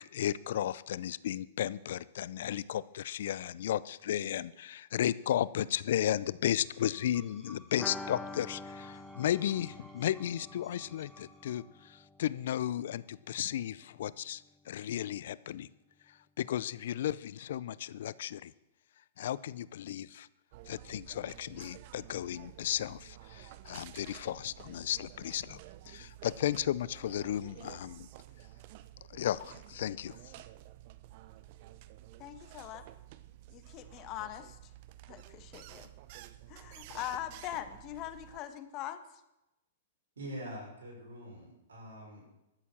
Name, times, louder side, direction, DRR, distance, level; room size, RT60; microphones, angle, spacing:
voice 1, 0.0-15.7 16.1-18.5 19.2-20.3 20.7-25.6 25.9-28.1 29.1-30.2, left 11 dB, 65° left, 20 dB, 0.5 m, -34 dB
sound 1, 6.5-11.9, right 1 dB, 15° right, 2.8 m, -59 dB
sound 2, 7.8-13.4 13.6-13.7 14.0-14.1, left 2 dB, 5° left, 1.0 m, -47 dB
sound 3, 20.5-38.4, right 14 dB, 50° right, 0.7 m, -52 dB
voice 2, 32.2-32.9 33.5-34.6 35.1-35.9 36.5-39.0, left 12 dB, 40° left, 11 dB, 1.2 m, -41 dB
voice 3, 40.2-42.3, equal, 80° right, -1 dB, 5.8 m, -44 dB
13.0 x 7.0 x 7.5 m, 0.92 s
hypercardioid pair, 115°, 0 cm